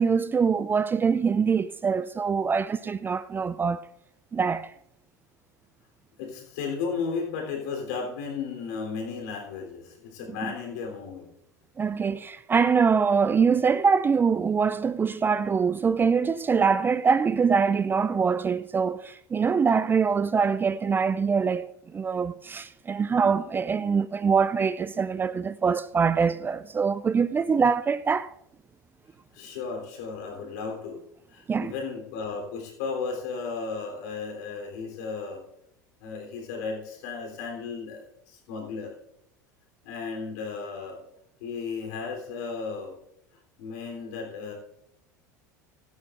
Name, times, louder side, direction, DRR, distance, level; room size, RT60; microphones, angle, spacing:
voice 1, 0.0-3.8 4.3-4.7 11.8-28.3 31.5-31.7, right 5 dB, 20° right, 0.4 m, -24 dB
voice 2, 6.2-11.3 29.3-31.0 31.3-35.4 36.0-38.9 39.8-41.0 41.4-42.9 43.6-44.5, left 5 dB, 65° left, 3.5 m, -34 dB
16.5 x 13.5 x 2.6 m
hypercardioid pair, 75°, 10 cm